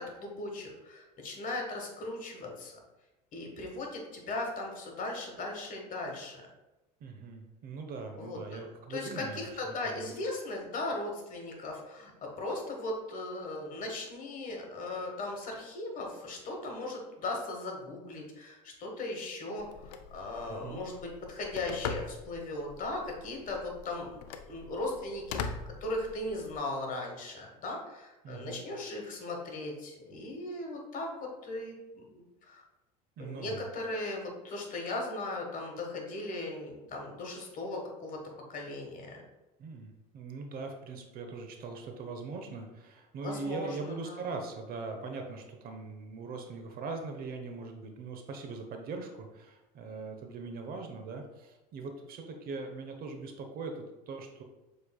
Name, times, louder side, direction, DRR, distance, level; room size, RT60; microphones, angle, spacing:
voice 1, 0.0-2.8 3.3-6.5 8.2-8.6 8.9-24.2 24.5-32.6 33.2-38.2 38.5-39.2 43.2-44.3, left 2 dB, 40° left, 1 dB, 1.4 m, -38 dB
voice 2, 7.0-10.1 20.5-20.8 28.2-28.6 33.2-33.6 39.6-54.4, right 4 dB, 50° right, 4 dB, 0.8 m, -41 dB
Telephone, 19.6-26.6, left 6 dB, 80° left, 0.4 m, -42 dB
6.8 x 3.2 x 2.3 m, 1.0 s
hypercardioid pair, 85°, 20 cm